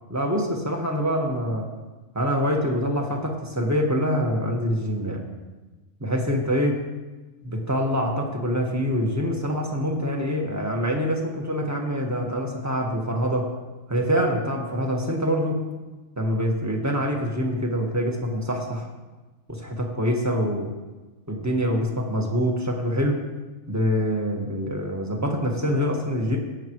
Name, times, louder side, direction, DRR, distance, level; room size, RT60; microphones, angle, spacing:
voice 1, 0.1-1.7 2.1-5.2 6.0-6.8 7.5-13.5 13.9-15.6 16.2-18.9 19.5-20.7 21.3-23.2 23.7-26.4, equal, 15° right, 0 dB, 1.5 m, -25 dB
18.0 x 8.7 x 3.1 m, 1.2 s
omnidirectional pair, 1.3 m